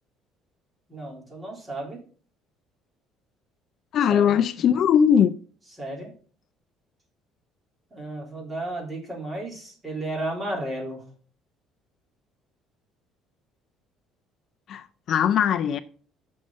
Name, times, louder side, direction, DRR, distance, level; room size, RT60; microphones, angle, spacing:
voice 1, 0.9-2.0 4.1-4.3 5.8-6.1 7.9-11.0, right 1 dB, 15° right, 3.5 m, -33 dB
voice 2, 3.9-5.3 14.7-15.8, left 8 dB, 50° left, 0.5 m, -20 dB
7.9 x 6.4 x 5.5 m
cardioid pair, 145°, 0 cm